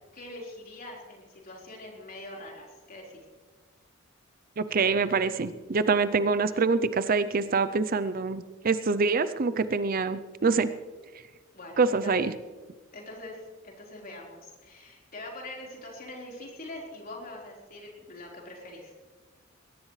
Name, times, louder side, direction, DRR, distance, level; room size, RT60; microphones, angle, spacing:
voice 1, 0.1-3.2 11.5-12.3 12.9-19.0, left 2 dB, 45° left, -2 dB, 4.3 m, -43 dB
voice 2, 4.6-10.7 11.8-12.3, right 4 dB, 45° right, 13 dB, 0.5 m, -25 dB
21.0 x 17.5 x 3.2 m, 1.4 s
head